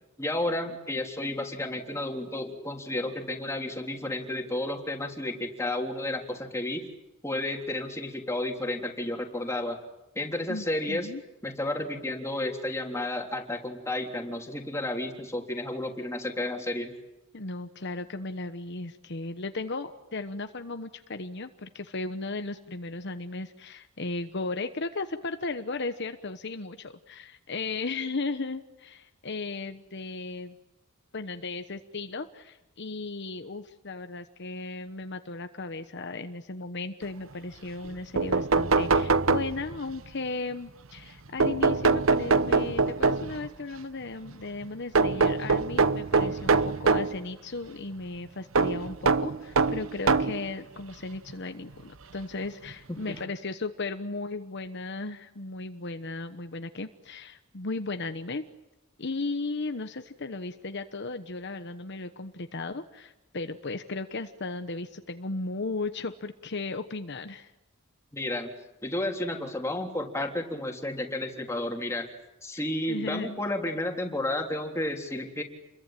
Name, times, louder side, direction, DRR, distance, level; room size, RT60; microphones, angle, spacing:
voice 1, 0.2-6.9 7.2-9.8 10.2-11.1 11.4-16.9 52.9-53.2 68.1-68.5 68.8-72.1 72.4-75.4, left 1 dB, 15° left, 2 dB, 3.4 m, -32 dB
voice 2, 10.5-11.2 17.3-30.6 31.1-58.5 59.0-67.5 72.5-73.4, left 3 dB, 55° left, 8 dB, 1.1 m, -36 dB
sound 1, 37.8-37.9 38.2-39.9 41.4-43.5 45.0-47.2 48.6-50.4 51.3-51.4 52.7-52.8 53.1-53.2, right 4 dB, 75° right, 1.0 m, -24 dB
29.0 x 22.5 x 9.1 m, 0.99 s
head